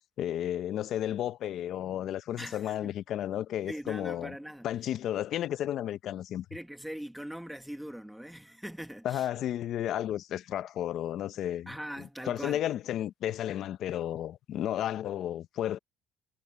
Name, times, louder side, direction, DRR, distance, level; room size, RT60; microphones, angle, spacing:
voice 1, 0.2-4.3 4.6-6.5 9.0-11.7 12.0-15.8, left 11 dB, 55° left, 0.7 m, -33 dB
voice 2, 2.4-2.9 3.7-4.7 6.5-9.3 11.7-12.6, equal, ahead, 1.4 m, -41 dB
cardioid pair, 130°, 0 cm